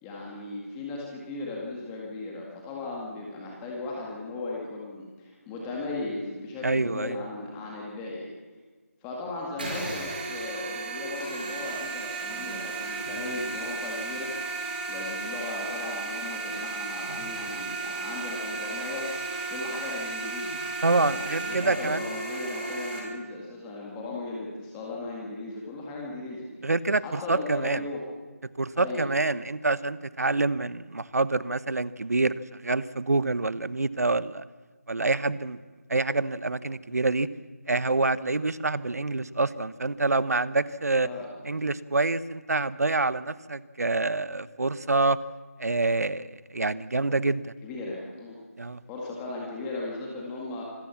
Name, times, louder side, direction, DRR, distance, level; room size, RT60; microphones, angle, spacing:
voice 1, 0.0-8.3 9.0-14.3 14.9-19.1 19.5-20.6 21.0-26.7 27.0-28.0 28.8-29.1 41.0-41.3 47.6-48.4 48.9-50.6, left 2 dB, 10° left, -2 dB, 2.0 m, -37 dB
voice 2, 6.6-7.1 20.8-22.1 26.6-27.8 28.6-34.4 34.9-35.6 35.9-37.3 37.7-41.1 41.5-45.2 45.6-47.5 48.6-48.8, right 3 dB, 85° right, 17 dB, 1.0 m, -26 dB
sound 1, 9.6-23.0, right 3 dB, 35° right, 5.3 m, -34 dB
25.5 x 15.0 x 7.2 m, 1.3 s
figure-of-eight pair, 175°, 8 cm